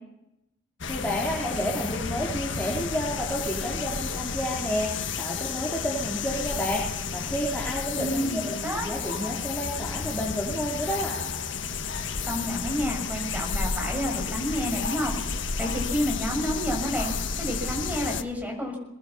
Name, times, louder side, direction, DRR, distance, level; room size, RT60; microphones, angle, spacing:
sound 1, 0.8-18.2, left 5 dB, 75° left, 1.4 m, -31 dB
voice 1, 0.9-6.8 7.1-8.4 8.8-11.2, equal, 10° left, -3 dB, 3.8 m, -30 dB
voice 2, 7.9-8.9 12.2-18.8, equal, 10° right, 0 dB, 6.8 m, -30 dB
23.0 x 20.5 x 7.2 m, 0.89 s
head